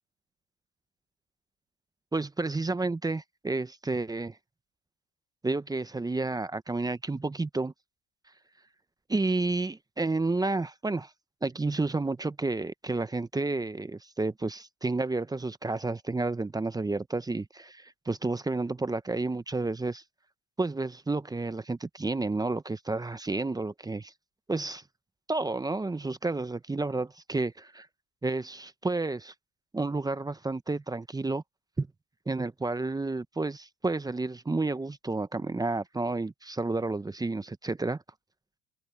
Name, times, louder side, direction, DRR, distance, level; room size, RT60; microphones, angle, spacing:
voice 1, 2.1-4.4 5.4-7.7 9.1-11.1 11.4-20.0 20.6-24.1 24.5-24.8 25.3-27.9 28.2-29.3 29.7-31.4 31.8-31.9 32.3-38.0, right 3 dB, 10° right, 0.9 m, -31 dB
supercardioid pair, 95°, 33 cm